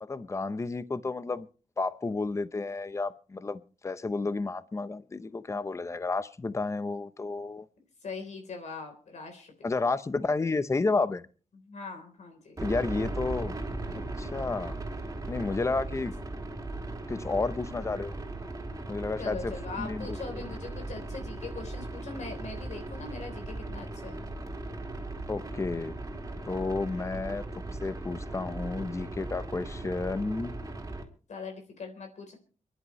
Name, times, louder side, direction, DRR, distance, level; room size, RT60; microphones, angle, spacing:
voice 1, 0.0-1.5 1.8-7.7 9.6-11.2 12.6-13.6 13.9-14.8 15.3-16.1 17.1-18.1 18.9-19.5 19.8-20.4 25.3-26.0 26.5-27.4 27.7-30.5, left 3 dB, 25° left, 0.7 m, -31 dB
voice 2, 8.0-9.9 11.6-12.6 19.2-24.2 26.9-27.2 31.3-32.4, left 4 dB, 70° left, 3.6 m, -41 dB
sound 1, 12.6-31.0, right 2 dB, 25° right, 3.0 m, -38 dB
29.0 x 11.0 x 3.1 m
wide cardioid pair, 140°, 12 cm